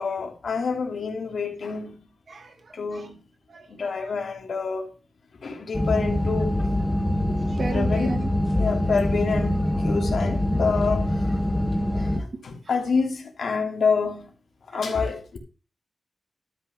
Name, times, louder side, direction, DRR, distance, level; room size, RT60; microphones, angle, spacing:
voice 1, 0.0-2.0 2.7-3.2 3.7-4.9 5.4-6.6 7.3-7.4 7.7-8.2 8.5-11.3 12.0-14.3 14.7-15.4, left 5 dB, 75° left, 3.1 m, -27 dB
voice 2, 2.3-2.8 3.5-3.7 3.9-4.0 7.5-8.3 11.9-12.0 14.9-15.1, right 3 dB, 50° right, 2.4 m, -34 dB
sound 1, 5.7-12.2, left 1 dB, 5° left, 2.1 m, -24 dB
12.5 x 6.1 x 6.4 m
wide cardioid pair, 160°, 0 cm